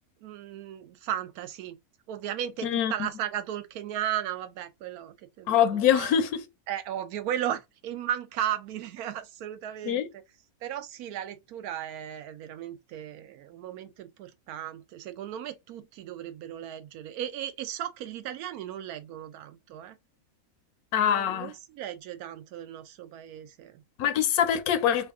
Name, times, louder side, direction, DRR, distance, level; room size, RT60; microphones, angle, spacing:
voice 1, 0.2-1.8 2.1-5.6 5.9-6.1 6.7-10.0 10.6-20.0 21.0-23.8, right 11 dB, 85° right, 1.1 m, -35 dB
voice 2, 2.6-2.9 5.5-6.4 9.8-10.1 20.9-21.5 24.0-25.1, left 9 dB, 80° left, 1.1 m, -24 dB
3.3 x 2.3 x 3.5 m
omnidirectional pair, 1.5 m